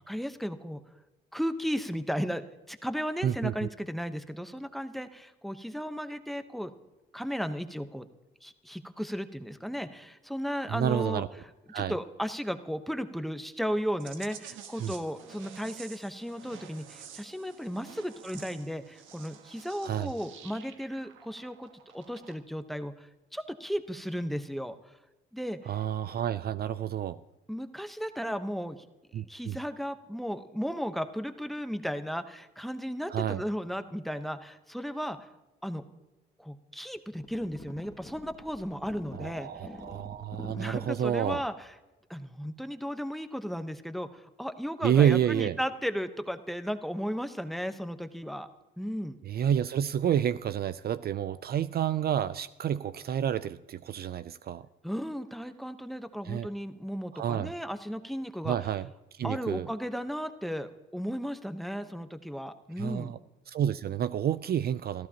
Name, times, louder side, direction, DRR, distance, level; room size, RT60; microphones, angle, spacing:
voice 1, 0.1-0.8 1.3-6.7 7.1-8.0 8.4-11.2 11.7-24.9 25.3-25.7 27.5-28.8 29.1-35.3 35.6-35.8 36.4-39.5 40.6-41.5 42.1-48.5 48.8-49.2 54.8-58.6 59.2-63.1, equal, ahead, 9 dB, 1.0 m, -35 dB
voice 2, 3.2-3.7 10.7-11.3 11.7-12.0 14.8-14.9 19.8-20.1 25.7-27.2 29.1-29.6 33.1-33.4 39.1-41.4 44.8-45.6 49.2-54.7 56.2-56.5 57.1-57.5 58.4-59.7 62.8-63.2 63.5-65.1, right 9 dB, 50° right, 15 dB, 0.4 m, -29 dB
sound 1, 14.0-22.3, right 8 dB, 85° right, 1.4 m, -50 dB
sound 2, 37.1-41.5, left 2 dB, 15° left, 1.6 m, -47 dB
29.5 x 14.0 x 2.9 m, 1.1 s
cardioid pair, 90°, 20 cm